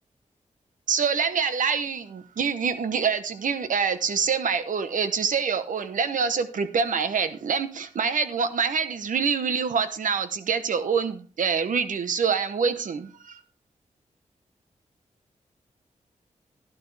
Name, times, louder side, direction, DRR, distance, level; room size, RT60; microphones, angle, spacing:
voice 1, 0.9-13.4, right 6 dB, 80° right, 11 dB, 1.0 m, -26 dB
12.0 x 11.5 x 3.4 m, 0.39 s
cardioid pair, 65°, 13 cm